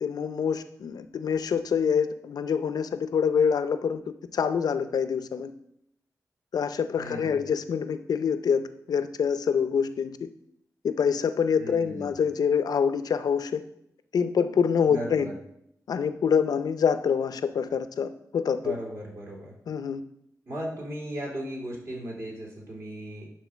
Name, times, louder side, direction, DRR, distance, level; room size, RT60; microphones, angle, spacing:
voice 1, 0.0-4.0 4.3-5.5 6.5-10.2 10.8-13.6 14.1-15.3 15.9-18.7 19.7-20.0, left 6 dB, 90° left, 11 dB, 0.5 m, -26 dB
voice 2, 7.0-7.4 11.6-12.1 14.9-15.3 18.6-19.5 20.5-23.3, right 1 dB, 50° right, -3 dB, 2.6 m, -36 dB
9.4 x 3.8 x 6.2 m, 0.74 s
wide cardioid pair, 170°, 6 cm